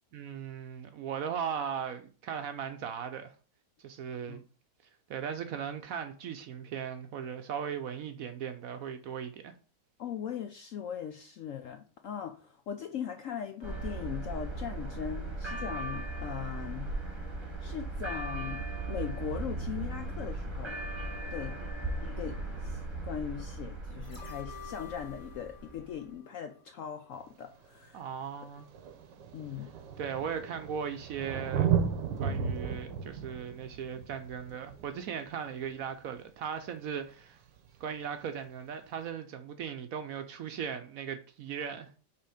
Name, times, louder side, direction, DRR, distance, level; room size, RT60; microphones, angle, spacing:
voice 1, 0.1-3.3 3.8-4.4 5.1-9.5 21.6-21.7 27.9-28.7 30.0-31.7 32.2-37.4 37.8-41.9, right 7 dB, 65° right, 0.9 m, -38 dB
voice 2, 10.0-16.9 17.6-20.8 21.3-21.6 22.0-28.0 29.3-29.7, left 9 dB, 70° left, 0.7 m, -40 dB
sound 1, 13.6-26.0, right 2 dB, 20° right, 1.1 m, -38 dB
sound 2, 24.0-27.2 27.5-27.6, left 5 dB, 15° left, 1.2 m, -50 dB
Thunder, 27.2-27.3 28.3-28.4 28.6-35.9 37.6-37.7, right 7 dB, 90° right, 1.5 m, -34 dB
5.7 x 3.5 x 5.0 m
omnidirectional pair, 1.8 m